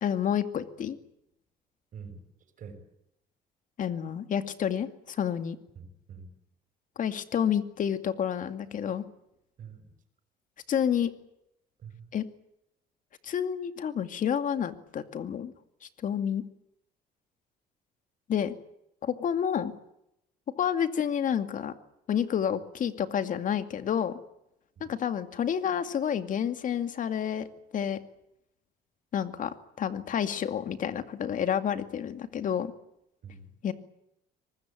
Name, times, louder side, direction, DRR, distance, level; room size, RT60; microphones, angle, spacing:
voice 1, 0.0-1.0 3.8-5.6 7.0-9.0 10.7-11.1 12.1-12.3 13.2-15.5 15.8-16.4 18.3-18.5 19.0-19.7 20.6-21.7 22.1-24.2 24.9-27.5 27.7-28.0 29.1-32.7 33.6-33.7, left 8 dB, 50° left, 10 dB, 2.4 m, -29 dB
voice 2, 1.9-2.2 2.6-2.8 5.7-6.3 9.6-9.9 11.8-12.1 24.8-24.9 33.2-33.5, right 5 dB, 50° right, 8 dB, 6.5 m, -45 dB
23.5 x 20.5 x 9.1 m, 0.82 s
cardioid pair, 110°, 17 cm